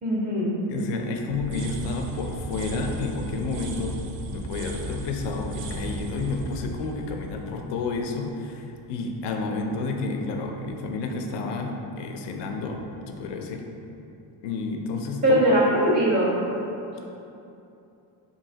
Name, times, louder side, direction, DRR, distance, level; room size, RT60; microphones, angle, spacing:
voice 1, 0.0-0.5 15.2-16.3, right 1 dB, 20° right, -6 dB, 0.6 m, -20 dB
voice 2, 0.7-4.0 4.3-13.6 14.4-15.5, left 3 dB, 60° left, 3 dB, 0.5 m, -30 dB
sound 1, 1.3-8.2, right 2 dB, 70° right, 0.5 m, -36 dB
2.8 x 2.6 x 3.8 m, 2.8 s
cardioid pair, 95°, 47 cm